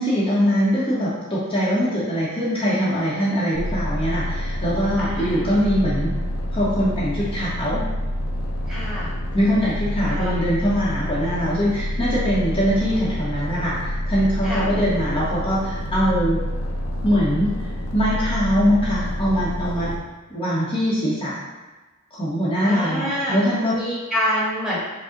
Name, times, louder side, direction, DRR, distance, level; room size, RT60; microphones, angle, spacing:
voice 1, 0.0-6.1 6.5-7.8 9.3-16.4 17.0-17.6 17.9-19.9 20.3-21.4 22.1-23.8, equal, 25° left, -9 dB, 0.7 m, -22 dB
sound 1, 3.5-20.0, equal, 75° left, 0.7 m, -28 dB
voice 2, 5.0-5.4 8.7-9.1 10.1-10.4 14.4-14.6 22.6-23.4 23.7-24.8, equal, 5° right, -8 dB, 1.0 m, -26 dB
5.1 x 2.0 x 3.7 m, 1.2 s
head